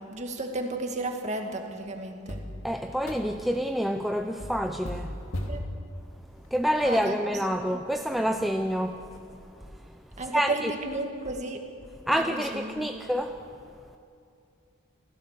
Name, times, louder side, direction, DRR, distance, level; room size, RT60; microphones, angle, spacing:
voice 1, 0.0-2.4 5.5-5.6 6.8-7.4 10.2-11.6 12.1-12.9, right 2 dB, 35° right, 3 dB, 2.2 m, -33 dB
sound 1, 2.3-3.6 4.4-7.0 7.6-7.7 8.2-8.3 8.6-9.5, left 1 dB, 70° left, 2.5 m, -38 dB
voice 2, 2.6-5.1 6.5-8.9 10.3-10.7 12.1-13.3, equal, ahead, 4 dB, 0.6 m, -27 dB
27.5 x 16.5 x 6.8 m, 2.5 s
head